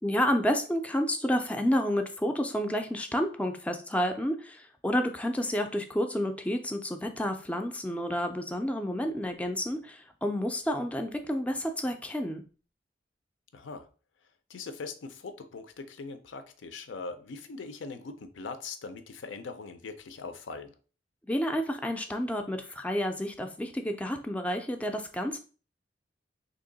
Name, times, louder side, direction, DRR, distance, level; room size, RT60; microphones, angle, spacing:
voice 1, 0.0-12.4 21.3-25.4, equal, 5° left, 5 dB, 0.3 m, -30 dB
voice 2, 13.5-13.9 14.5-20.7, left 4 dB, 85° left, 9 dB, 0.5 m, -41 dB
2.9 x 2.7 x 3.8 m, 0.38 s
head